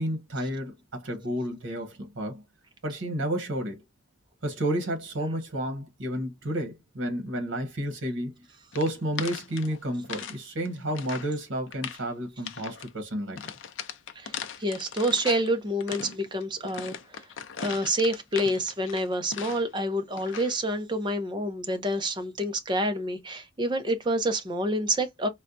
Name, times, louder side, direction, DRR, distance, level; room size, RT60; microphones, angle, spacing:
voice 1, 0.0-2.4 2.8-3.8 4.4-8.3 8.7-13.5, right 1 dB, 75° right, 1.0 m, -31 dB
sound 1, 8.7-10.4 10.7-11.3 11.7-12.1 12.4-12.9 13.4-15.5 15.8-19.8 20.2-20.6, left 7 dB, 75° left, 0.5 m, -39 dB
voice 2, 14.6-16.9 17.6-25.3, right 1 dB, 25° right, 0.5 m, -28 dB
4.1 x 2.2 x 2.5 m
head